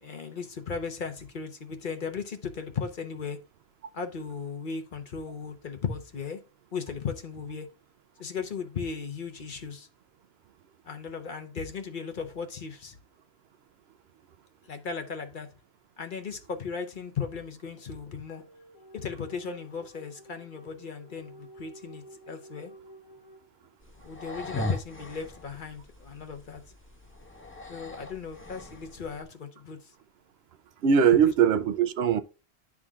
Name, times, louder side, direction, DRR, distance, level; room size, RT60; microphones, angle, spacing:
voice 1, 0.0-3.4 3.9-6.4 6.7-7.7 8.2-9.9 10.8-13.0 14.7-15.5 16.0-18.4 18.9-22.7 24.0-26.6 27.7-29.8, left 5 dB, 55° left, 1.0 m, -36 dB
sound 1, 17.6-24.0, right 1 dB, 85° left, 1.3 m, -52 dB
sound 2, 23.8-29.2, left 1 dB, 15° left, 0.7 m, -39 dB
voice 2, 30.8-32.2, right 7 dB, 80° right, 0.8 m, -21 dB
11.0 x 3.7 x 2.4 m
omnidirectional pair, 1.0 m